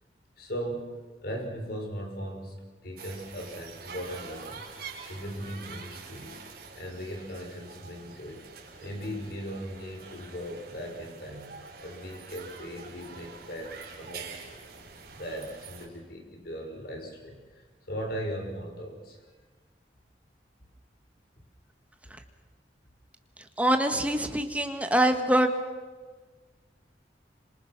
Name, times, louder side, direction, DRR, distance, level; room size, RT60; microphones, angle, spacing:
voice 1, 0.4-0.9 1.2-2.6 2.8-4.7 5.0-6.4 6.7-8.5 8.8-11.6 11.8-14.3 15.1-19.2, equal, 60° left, 3 dB, 5.4 m, -38 dB
sound 1, 3.0-15.9, right 5 dB, 60° right, 4.8 m, -46 dB
voice 2, 23.6-25.5, right 1 dB, 10° right, 6 dB, 1.7 m, -24 dB
27.5 x 26.0 x 6.1 m, 1.3 s
head